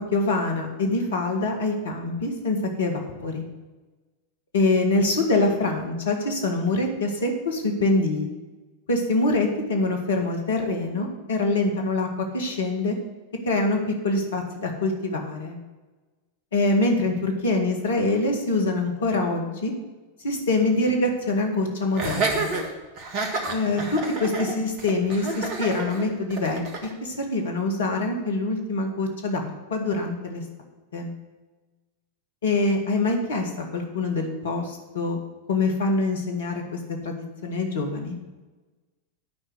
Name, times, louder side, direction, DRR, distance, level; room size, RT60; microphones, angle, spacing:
voice 1, 0.1-3.4 4.5-8.3 8.9-12.1 12.3-12.9 13.4-15.6 16.5-19.7 20.2-22.5 23.5-26.6 27.0-30.4 30.9-31.1 32.4-35.2 35.5-36.6 37.0-38.2, left 2 dB, 65° left, 3 dB, 1.8 m, -25 dB
Laughter, 22.0-26.9, right 3 dB, 40° right, 1.7 m, -29 dB
9.5 x 5.6 x 7.9 m, 1.2 s
figure-of-eight pair, 90°, 0 cm